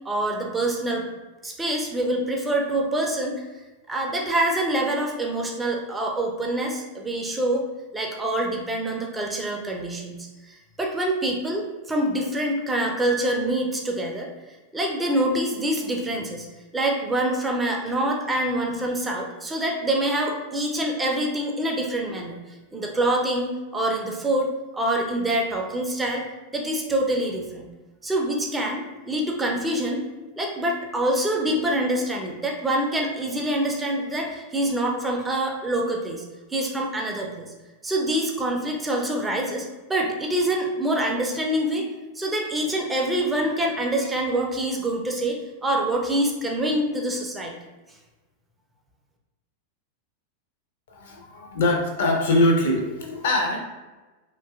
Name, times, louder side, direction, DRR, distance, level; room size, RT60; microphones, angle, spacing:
voice 1, 0.0-1.1 1.4-3.4 3.9-7.6 7.9-14.3 14.7-16.5 16.7-22.4 22.7-26.3 26.5-27.7 28.0-30.0 30.4-36.2 36.5-37.5 37.8-41.9 42.1-47.5, right 1 dB, 10° right, 0 dB, 0.4 m, -25 dB
voice 2, 50.9-53.6, left 1 dB, 60° left, 1 dB, 0.5 m, -22 dB
2.7 x 2.3 x 2.3 m, 1.2 s
figure-of-eight pair, 90°, 0 cm